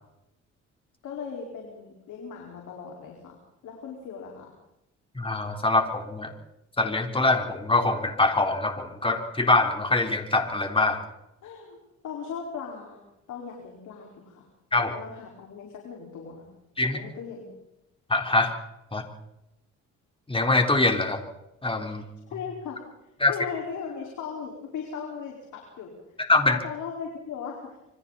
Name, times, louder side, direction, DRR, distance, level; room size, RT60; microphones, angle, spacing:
voice 1, 1.0-3.4 3.6-4.5 11.4-11.8 12.0-13.0 13.3-14.5 14.8-16.5 16.8-17.5 21.8-21.9 22.3-25.9 26.4-27.8, left 6 dB, 75° left, -1 dB, 5.1 m, -38 dB
voice 2, 5.1-6.3 6.8-11.0 14.7-14.9 16.8-17.0 18.1-18.5 18.9-19.1 20.3-21.2 21.6-22.0 23.2-23.3 26.3-26.6, left 2 dB, 15° left, 5 dB, 3.8 m, -23 dB
27.0 x 24.5 x 4.3 m, 0.88 s
cardioid pair, 90°, 30 cm